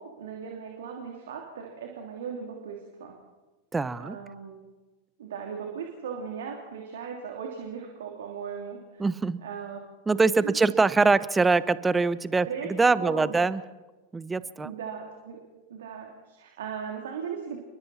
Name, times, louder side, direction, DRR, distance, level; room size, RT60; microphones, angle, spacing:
voice 1, 0.0-3.2 4.0-4.6 5.2-9.1 9.4-9.8 10.4-10.7 12.4-12.7 13.0-13.4 14.6-15.4 15.7-17.6, right 6 dB, 60° right, 1 dB, 3.2 m, -38 dB
voice 2, 3.7-4.2 9.0-9.4 10.1-12.5 12.8-13.6 14.1-14.7, right 3 dB, 10° right, 17 dB, 0.9 m, -23 dB
29.0 x 22.5 x 4.3 m, 1.2 s
figure-of-eight pair, 90°, 0 cm